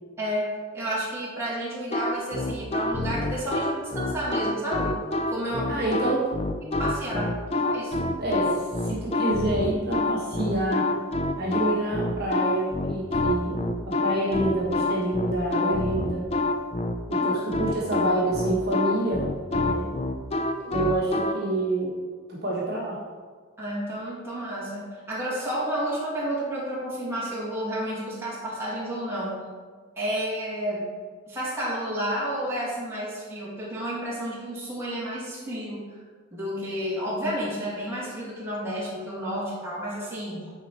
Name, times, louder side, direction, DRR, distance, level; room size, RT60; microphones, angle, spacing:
voice 1, 0.2-0.5 0.7-5.0 5.3-5.9 6.6-7.3 7.6-8.0 17.2-17.4 23.6-29.4 30.0-30.9 31.3-35.9 36.3-40.5, equal, 15° right, -8 dB, 2.3 m, -31 dB
sound 1, 1.9-21.3, left 2 dB, 30° left, 0.4 m, -27 dB
voice 2, 5.7-6.2 8.2-10.8 11.4-16.2 17.1-19.9 20.6-21.9 22.3-23.0, right 1 dB, 50° right, -6 dB, 1.6 m, -27 dB
10.0 x 4.4 x 4.5 m, 1.5 s
head